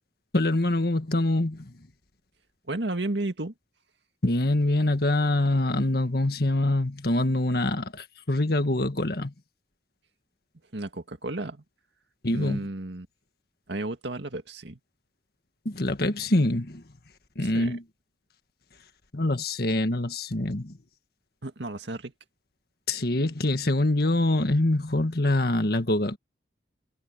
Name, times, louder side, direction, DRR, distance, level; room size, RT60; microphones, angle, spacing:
voice 1, 0.3-1.7 4.2-9.3 12.2-12.6 15.7-16.8 17.4-17.8 19.1-20.8 22.9-26.2, left 1 dB, 55° left, 1.8 m, -25 dB
voice 2, 2.7-3.5 10.7-11.6 12.3-13.1 13.7-14.8 17.4-17.8 21.4-22.1, right 2 dB, 75° right, 2.0 m, -33 dB
head